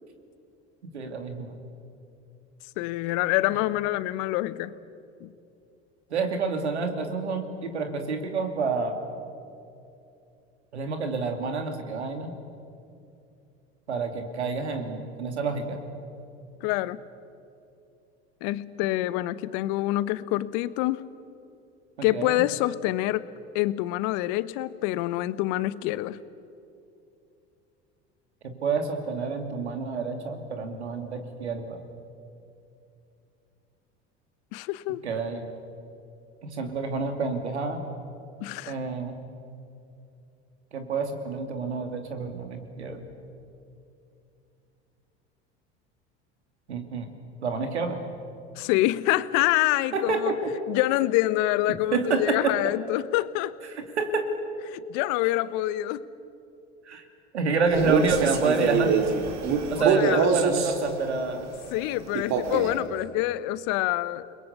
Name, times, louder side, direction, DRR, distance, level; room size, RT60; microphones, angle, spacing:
voice 1, 0.9-1.6 6.1-9.1 10.7-12.3 13.9-15.8 22.0-22.3 28.4-31.8 35.0-35.5 36.4-37.8 38.7-39.2 40.7-43.1 46.7-47.1 47.4-48.0 49.9-50.3 51.9-52.6 54.0-54.3 56.8-57.0 57.3-58.9 59.7-61.5, right 4 dB, 90° right, 6 dB, 2.7 m, -28 dB
voice 2, 2.8-4.7 5.2-5.3 16.6-17.0 18.4-21.0 22.0-23.3 23.5-26.2 34.5-35.0 38.4-38.8 48.6-50.3 50.7-53.5 54.7-56.1 59.8-60.3 61.7-64.3, left 16 dB, 60° left, 16 dB, 1.1 m, -26 dB
Male speech man speaking, 57.7-60.8 62.1-62.8, right 5 dB, 55° right, 2.8 m, -24 dB
29.5 x 21.0 x 8.2 m, 2.7 s
hypercardioid pair, 75°, 33 cm